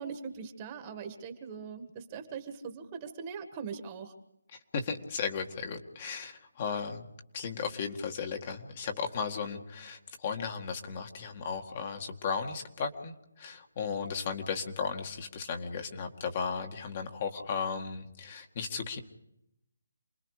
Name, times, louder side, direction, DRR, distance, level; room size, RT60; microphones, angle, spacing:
voice 1, 0.0-4.1, right 6 dB, 20° right, 6 dB, 1.8 m, -41 dB
voice 2, 4.7-7.1 7.3-19.0, left 5 dB, 30° left, 4 dB, 2.0 m, -35 dB
28.5 x 20.5 x 5.0 m, 0.81 s
hypercardioid pair, 165°, 0 cm